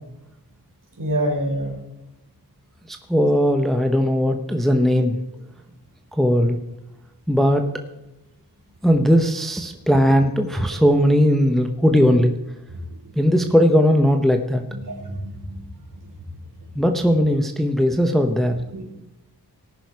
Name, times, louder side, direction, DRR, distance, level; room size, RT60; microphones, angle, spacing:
voice 1, 1.0-1.7 12.7-12.9 14.7-15.6 18.7-18.9, right 1 dB, 55° right, 0 dB, 4.2 m, -27 dB
voice 2, 2.9-5.2 6.2-6.6 7.3-7.6 8.8-12.3 13.2-14.6 16.7-18.5, equal, ahead, 5 dB, 0.9 m, -18 dB
19.0 x 6.3 x 4.7 m, 0.97 s
wide cardioid pair, 65°, 39 cm